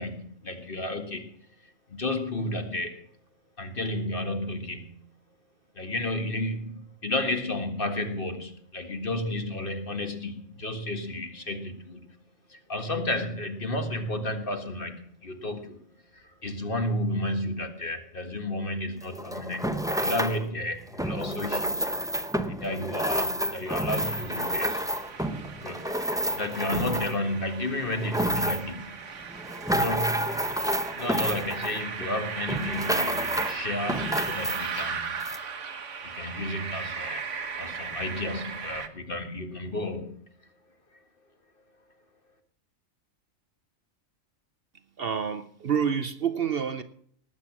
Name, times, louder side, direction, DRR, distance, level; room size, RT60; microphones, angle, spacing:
voice 1, 0.0-1.3 1.9-3.0 3.6-5.0 5.8-12.2 12.5-15.8 16.1-21.9 22.5-24.8 25.6-25.9 26.4-29.0 29.7-30.5 30.9-35.2 36.0-37.3 37.6-40.2, left 1 dB, 45° left, 1.9 m, -32 dB
sound 1, 19.0-20.4 20.9-27.3 27.8-28.8 29.3-32.1 32.5-33.6 33.9-34.8 35.2-35.4, right 1 dB, 5° right, 0.8 m, -29 dB
voice 2, 22.3-22.6 45.0-46.8, right 7 dB, 55° right, 0.9 m, -28 dB
sound 2, 23.9-38.9, right 6 dB, 70° right, 1.5 m, -37 dB
19.0 x 8.8 x 6.1 m
omnidirectional pair, 1.3 m